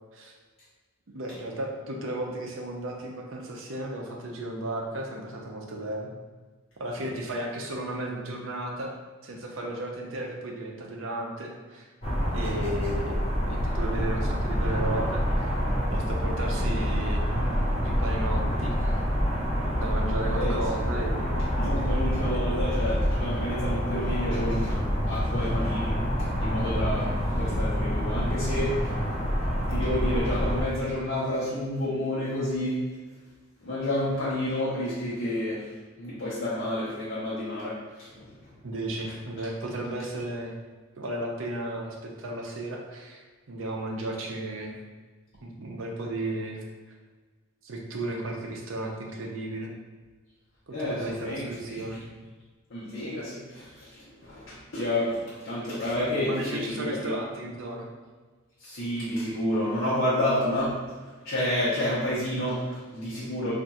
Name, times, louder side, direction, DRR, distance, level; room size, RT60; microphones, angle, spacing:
voice 1, 1.1-6.1 6.8-8.9 9.2-11.8 12.3-15.6 15.9-17.3 17.8-19.1 19.8-21.5 21.8-21.9 22.3-22.7 38.6-40.5 41.0-43.2 43.5-44.8 45.4-46.6 47.6-49.7 50.7-52.0 56.0-57.9, right 1 dB, 75° right, 0 dB, 0.6 m, -34 dB
sound 1, 12.0-30.6, equal, 30° left, 0.6 m, -27 dB
voice 2, 21.6-26.0 26.4-28.9 29.7-32.8 33.6-35.7 36.0-38.5 50.7-52.0 52.7-57.2 58.6-63.5, left 1 dB, 70° left, -10 dB, 0.8 m, -30 dB
2.6 x 2.3 x 4.0 m, 1.4 s
head